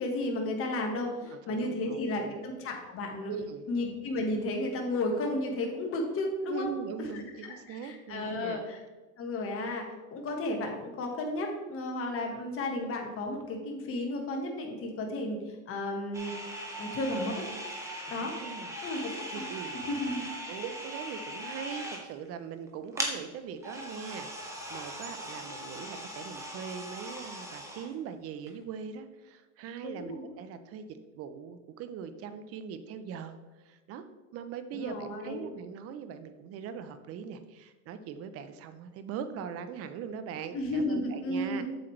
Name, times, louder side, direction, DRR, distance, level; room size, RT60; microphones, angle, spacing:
voice 1, 0.0-3.3 3.7-6.7 7.0-7.2 7.7-8.8 9.2-9.9 10.1-15.4 15.7-16.3 16.8-17.4 18.1-18.4 18.8-19.5 19.9-20.3 29.8-30.2 34.7-35.5 40.5-41.6, left 1 dB, 30° left, 2 dB, 1.7 m, -33 dB
voice 2, 1.2-2.4 3.3-3.7 6.5-8.6 18.0-18.7 19.3-19.7 20.5-30.8 31.2-33.4 33.6-34.1 34.3-41.6, right 7 dB, 35° right, 10 dB, 0.7 m, -41 dB
sound 1, 16.1-22.3 22.7-22.8 22.9-23.1 23.6-27.9 28.5-28.6, equal, 5° right, 1.3 m, -39 dB
7.9 x 7.5 x 3.3 m, 1.2 s
supercardioid pair, 125°, 42 cm